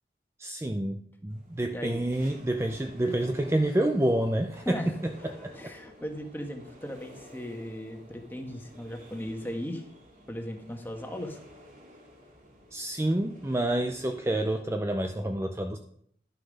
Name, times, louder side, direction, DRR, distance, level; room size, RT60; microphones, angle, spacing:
voice 1, 0.4-5.5 12.7-15.8, right 1 dB, 15° right, 5 dB, 0.5 m, -28 dB
sound 1, 1.3-14.6, equal, 45° right, 2.7 m, -51 dB
voice 2, 1.7-2.0 4.7-4.9 5.5-9.8 10.3-11.4, equal, 10° left, 3 dB, 1.2 m, -37 dB
11.5 x 6.7 x 5.3 m, 0.66 s
head